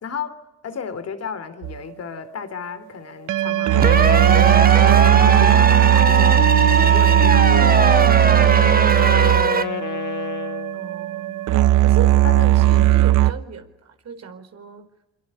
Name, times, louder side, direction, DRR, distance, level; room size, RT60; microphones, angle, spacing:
voice 1, 0.0-5.8 6.1-6.5 6.7-9.1 12.2-13.0, left 6 dB, 55° left, 12 dB, 3.5 m, -34 dB
sound 1, 1.6-1.8 3.3-13.3, right 15 dB, 90° right, 1.0 m, -17 dB
Wind instrument woodwind instrument, 3.8-10.8, left 9 dB, 85° left, 2.0 m, -28 dB
sound 2, 3.8-9.6, right 5 dB, 30° right, 1.2 m, -19 dB
voice 2, 10.7-11.5 11.8-14.8, right 6 dB, 60° right, 7 dB, 4.3 m, -35 dB
25.0 x 22.0 x 9.8 m, 0.95 s
cardioid pair, 90°, 30 cm